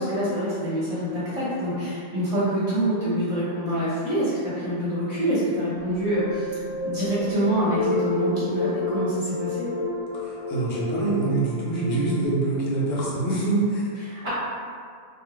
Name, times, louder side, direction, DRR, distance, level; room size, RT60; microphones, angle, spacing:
voice 1, 0.0-6.5 6.8-9.7 14.0-14.3, right 1 dB, 30° right, -11 dB, 0.9 m, -26 dB
sound 1, 5.8-12.3, left 3 dB, 80° left, 1.1 m, -30 dB
voice 2, 10.1-14.3, right 2 dB, 60° left, -5 dB, 0.8 m, -25 dB
2.4 x 2.4 x 3.0 m, 2.1 s
omnidirectional pair, 1.3 m